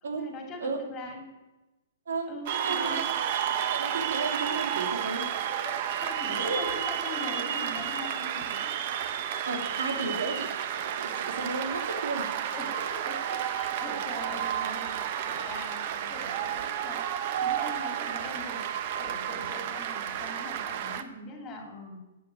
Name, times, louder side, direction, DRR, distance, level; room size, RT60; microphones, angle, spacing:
voice 1, 0.0-1.3 2.3-3.0 5.5-8.6 10.0-10.1 12.5-17.1 17.4-18.6 19.0-22.0, left 2 dB, 15° left, 2 dB, 2.8 m, -42 dB
voice 2, 2.1-3.2 3.6-5.3 6.4-6.6 9.4-12.3, right 3 dB, 80° right, 3 dB, 3.1 m, -33 dB
Cheering / Applause, 2.5-21.0, right 9 dB, 35° right, 0.9 m, -31 dB
13.0 x 8.5 x 9.5 m, 1.1 s
hypercardioid pair, 175°, 0 cm